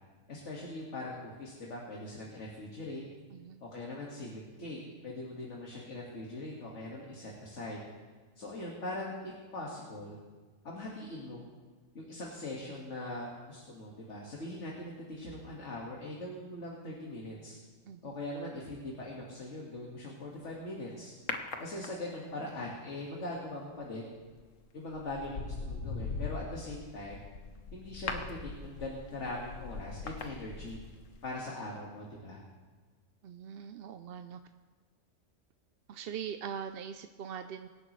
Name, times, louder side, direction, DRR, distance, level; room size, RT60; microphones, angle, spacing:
voice 1, 0.3-3.0 3.6-7.8 8.4-10.2 10.6-11.4 11.9-17.6 18.0-21.1 21.6-24.1 24.7-27.2 27.7-30.8 31.2-32.4, left 2 dB, 70° left, -3 dB, 2.1 m, -41 dB
voice 2, 3.3-3.6 17.9-18.1 33.2-34.4 35.9-37.7, right 8 dB, 60° right, 8 dB, 0.7 m, -42 dB
sound 1, 21.3-22.3 24.2-24.5 24.9-31.1 31.4-31.5, left 4 dB, 85° left, 1.4 m, -40 dB
24.5 x 10.5 x 3.1 m, 1.4 s
omnidirectional pair, 1.3 m